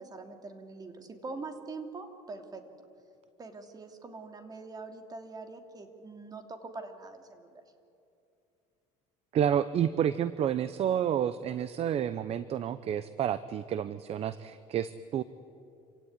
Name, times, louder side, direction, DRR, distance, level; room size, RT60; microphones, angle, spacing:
voice 1, 0.0-2.6 3.4-7.6, right 3 dB, 25° right, 6 dB, 2.8 m, -43 dB
voice 2, 9.3-15.2, right 9 dB, 45° right, 15 dB, 0.7 m, -30 dB
27.0 x 16.5 x 9.8 m, 2.7 s
cardioid pair, 110°, 14 cm